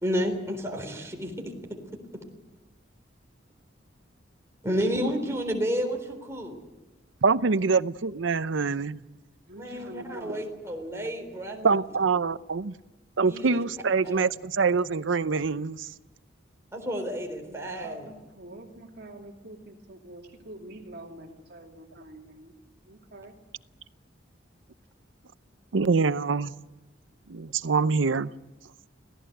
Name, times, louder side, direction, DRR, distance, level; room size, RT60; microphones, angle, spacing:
voice 1, 0.0-1.5 4.6-6.6 9.6-11.7 13.3-13.6 14.0-14.2 16.7-18.1, equal, 15° right, 3.8 m, -31 dB
voice 2, 7.2-9.0 11.6-12.7 13.2-15.9 25.7-26.5 27.3-28.3, right 4 dB, 85° right, 0.7 m, -25 dB
voice 3, 9.5-10.5 17.4-22.5 22.9-23.4, right 1 dB, 60° right, 2.8 m, -46 dB
26.5 x 17.0 x 7.9 m
head